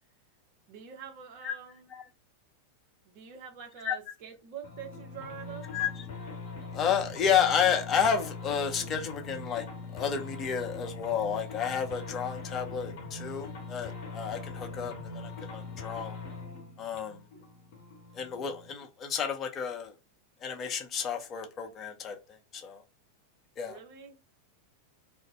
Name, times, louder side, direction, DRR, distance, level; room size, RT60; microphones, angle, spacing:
voice 1, 0.7-1.9 3.0-5.7 17.3-17.5 23.7-24.2, right 7 dB, 50° right, 0.7 m, -45 dB
sound 1, 4.6-18.7, left 3 dB, 50° left, 0.9 m, -42 dB
voice 2, 5.7-6.0 6.7-9.7 9.9-16.2 16.8-17.2 18.1-19.9 20.4-22.2 22.5-22.8 23.6-23.8, left 7 dB, 30° left, 0.6 m, -31 dB
2.4 x 2.1 x 3.5 m
figure-of-eight pair, 90°, 0 cm